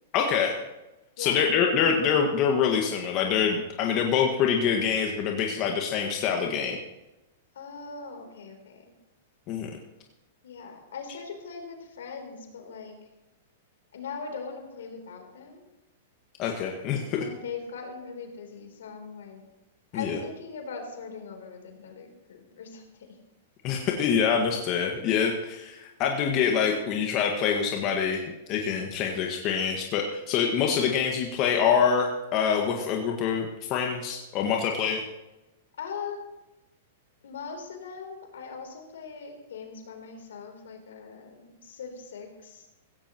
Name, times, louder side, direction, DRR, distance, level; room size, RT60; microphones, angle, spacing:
voice 1, 0.1-0.6 1.2-6.8 9.5-9.7 16.4-17.2 19.9-20.2 23.6-28.2 28.5-35.0, left 7 dB, 40° left, 1 dB, 1.7 m, -25 dB
voice 2, 7.5-8.9 10.4-13.0 13.9-15.7 17.2-19.4 19.9-23.1 35.8-36.3 37.2-42.7, left 5 dB, 75° left, 3 dB, 3.5 m, -40 dB
16.5 x 15.5 x 3.1 m, 1.0 s
hypercardioid pair, 115°, 0 cm